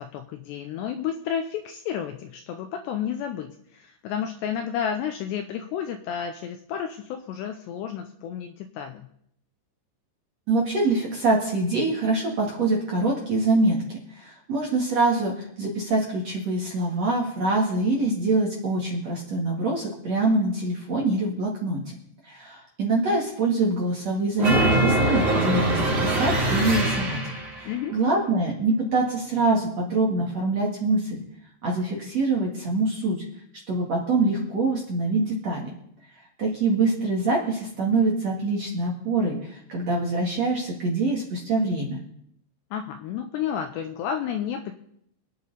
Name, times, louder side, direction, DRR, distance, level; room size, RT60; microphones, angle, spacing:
voice 1, 0.0-9.1 27.6-28.0 42.7-44.7, left 8 dB, 80° left, 6 dB, 2.6 m, -31 dB
voice 2, 10.5-13.8 14.1-21.8 22.2-27.2 27.6-31.2 31.6-33.2 33.7-35.7 36.4-42.0, right 2 dB, 50° right, -2 dB, 2.1 m, -24 dB
sound 1, 24.4-27.6, right 1 dB, 30° right, 3.0 m, -23 dB
24.5 x 9.5 x 4.1 m, 0.72 s
omnidirectional pair, 5.7 m